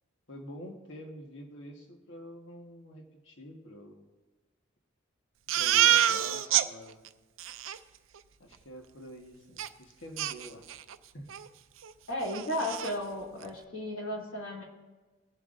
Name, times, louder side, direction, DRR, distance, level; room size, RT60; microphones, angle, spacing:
voice 1, 0.3-4.0 5.5-7.1 8.4-10.8 11.1-11.4, equal, 65° left, 1 dB, 1.4 m, -47 dB
Crying sobbing, 5.5-6.7 7.1-7.2 7.4-7.8 9.6-9.7 10.2-11.0 11.3-11.5 11.8-11.9 12.3-12.9, right 11 dB, 70° right, 0.5 m, -27 dB
voice 2, 12.1-14.6, left 1 dB, 85° left, -3 dB, 2.9 m, -34 dB
21.0 x 7.8 x 2.6 m, 1.2 s
head